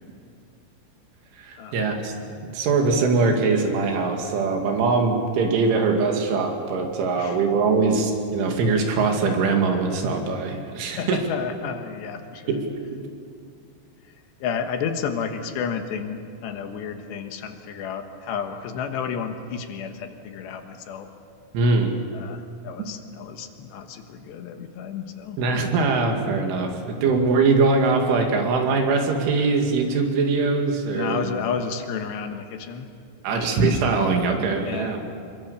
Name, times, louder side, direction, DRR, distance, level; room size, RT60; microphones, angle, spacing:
voice 1, 1.4-2.1 2.5-11.3 12.5-13.0 21.5-22.0 25.4-31.2 33.2-35.0, right 4 dB, 75° right, 3 dB, 4.8 m, -22 dB
voice 2, 11.0-12.5 14.4-21.1 22.1-25.4 30.9-32.9 33.3-33.6 34.6-34.9, left 6 dB, 70° left, 6 dB, 3.2 m, -31 dB
27.5 x 23.5 x 7.0 m, 2.4 s
omnidirectional pair, 5.6 m